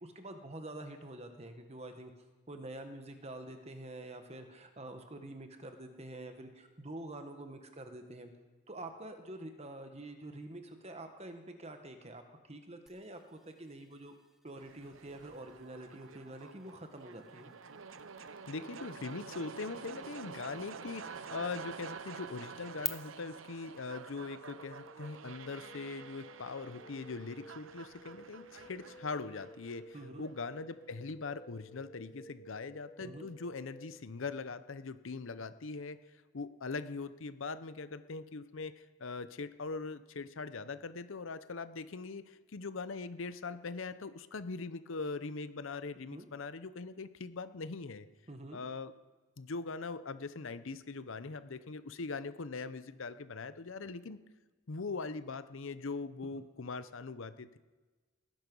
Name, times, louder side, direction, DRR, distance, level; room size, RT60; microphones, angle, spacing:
voice 1, 0.0-2.1 2.5-8.3 8.7-14.1 14.4-17.5 29.9-30.2 33.0-33.3 46.1-46.3 48.3-48.6, right 1 dB, 30° right, 6 dB, 1.4 m, -47 dB
sound 1, 12.9-22.9, right 1 dB, ahead, 0.6 m, -50 dB
sound 2, 14.6-30.6, right 5 dB, 70° right, 0.7 m, -49 dB
voice 2, 18.5-48.1 48.5-48.9 49.4-54.2 54.7-57.6, left 4 dB, 70° left, 13 dB, 0.7 m, -41 dB
sound 3, 24.4-34.0, left 1 dB, 25° left, 4.2 m, -55 dB
19.0 x 11.0 x 5.4 m, 1.3 s
head